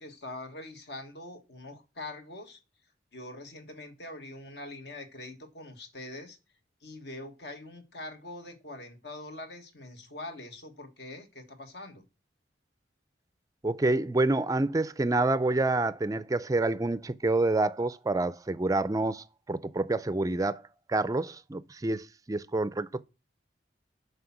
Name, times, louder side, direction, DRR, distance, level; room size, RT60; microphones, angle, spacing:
voice 1, 0.0-2.6 3.1-6.4 6.8-12.0, left 2 dB, 65° left, 1.6 m, -43 dB
voice 2, 13.6-20.6 20.9-23.0, right 2 dB, 20° right, 0.4 m, -28 dB
7.8 x 5.5 x 5.9 m
head